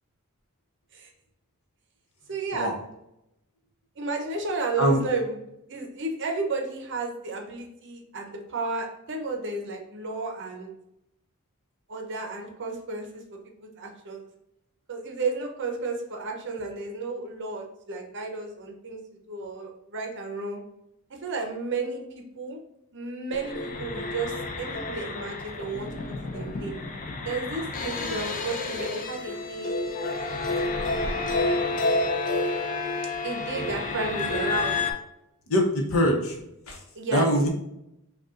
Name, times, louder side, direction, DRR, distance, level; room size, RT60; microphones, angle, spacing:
voice 1, 2.3-2.7 4.0-5.4 5.7-10.7 11.9-13.2 13.6-14.3 14.9-19.0 19.3-20.6 21.2-22.6 22.9-25.9 26.3-26.7 27.2-29.7 30.0-30.1 30.4-30.9 33.2-34.7 36.9-37.3, right 3 dB, 55° right, 2 dB, 0.8 m, -32 dB
sound 1, 23.3-34.9, left 3 dB, 35° left, 0.4 m, -29 dB
voice 2, 35.5-36.4 36.7-36.8 37.1-37.5, equal, 70° left, 2 dB, 0.9 m, -23 dB
5.2 x 2.3 x 2.5 m, 0.83 s
head